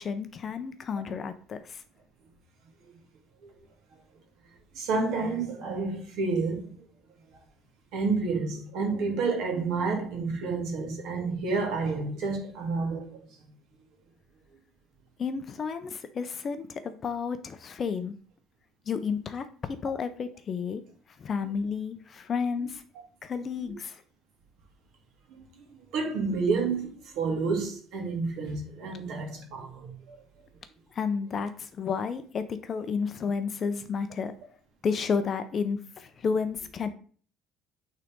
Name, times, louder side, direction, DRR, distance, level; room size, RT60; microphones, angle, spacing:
voice 1, 0.0-1.8 15.2-18.2 18.9-20.8 21.2-22.8 23.2-24.0 30.9-34.3 34.8-36.9, left 5 dB, 30° left, 0.5 m, -31 dB
voice 2, 4.7-6.9 7.9-13.2 25.3-25.6 25.9-30.2, right 4 dB, 55° right, 2.1 m, -30 dB
8.9 x 3.8 x 3.5 m
cardioid pair, 180°, 0 cm